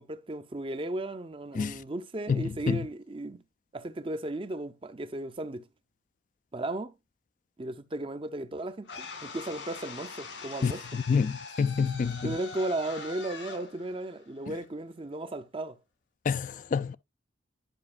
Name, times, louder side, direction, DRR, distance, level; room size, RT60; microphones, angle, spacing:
voice 1, 0.0-3.4 3.7-5.7 6.5-6.9 7.6-11.0 12.0-15.8, right 2 dB, 30° right, 0.6 m, -35 dB
voice 2, 2.3-2.8 10.6-10.7 11.1-12.3 16.3-16.9, left 5 dB, 45° left, 0.3 m, -27 dB
sound 1, 8.9-15.0, left 4 dB, 85° left, 2.1 m, -43 dB
10.5 x 5.2 x 2.5 m
head